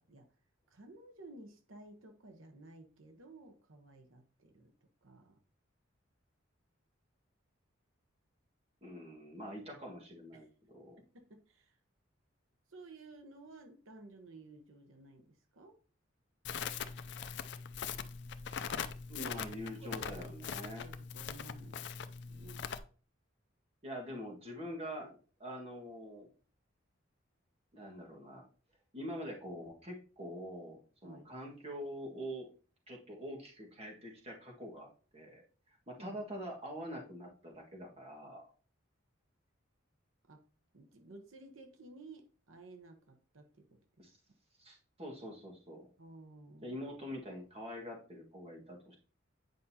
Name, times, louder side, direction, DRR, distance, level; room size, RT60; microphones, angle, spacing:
voice 1, 0.7-4.7 5.0-5.4 10.3-10.5 11.0-11.8 12.7-15.8 19.1-19.3 19.7-22.7 31.0-31.3 36.0-36.2 40.3-40.4 40.7-43.8 46.0-46.8, right 2 dB, 90° right, 5 dB, 1.0 m, -55 dB
voice 2, 8.8-11.0 19.1-20.9 23.8-26.3 27.7-28.4 28.9-32.5 32.9-35.4 35.9-38.5 44.0-44.2 44.6-45.9 46.6-49.0, equal, 30° right, -1 dB, 1.7 m, -45 dB
Crackle, 16.4-22.8, left 6 dB, 60° left, 0.5 m, -41 dB
9.2 x 5.3 x 2.8 m, 0.39 s
head